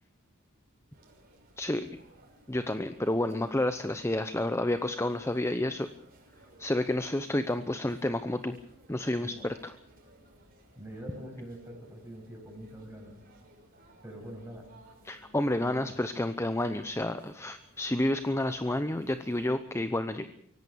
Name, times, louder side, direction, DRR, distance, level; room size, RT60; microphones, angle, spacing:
sound 1, 0.9-19.5, right 1 dB, 45° right, 5.8 m, -59 dB
voice 1, 1.6-1.9 2.5-5.9 6.6-8.6 8.9-9.7 15.0-20.3, left 1 dB, 10° left, 10 dB, 0.8 m, -30 dB
voice 2, 10.7-13.1 14.0-14.6 15.5-15.8, right 1 dB, 10° right, 0 dB, 7.9 m, -44 dB
25.0 x 17.0 x 7.0 m, 0.70 s
head